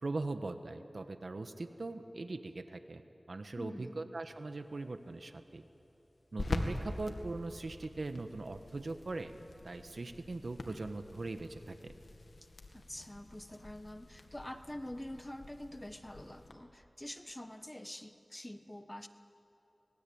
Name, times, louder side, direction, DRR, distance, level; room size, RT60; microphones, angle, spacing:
voice 1, 0.0-3.0 3.3-5.6 6.3-9.3 9.6-11.9, right 2 dB, 75° right, 8 dB, 1.4 m, -40 dB
voice 2, 3.6-4.0 12.7-19.1, left 1 dB, 20° left, 9 dB, 1.3 m, -46 dB
sound 1, 4.3-16.5, left 2 dB, 85° left, 2.0 m, -45 dB
24.5 x 20.5 x 8.8 m, 2.9 s
wide cardioid pair, 40°, 0 cm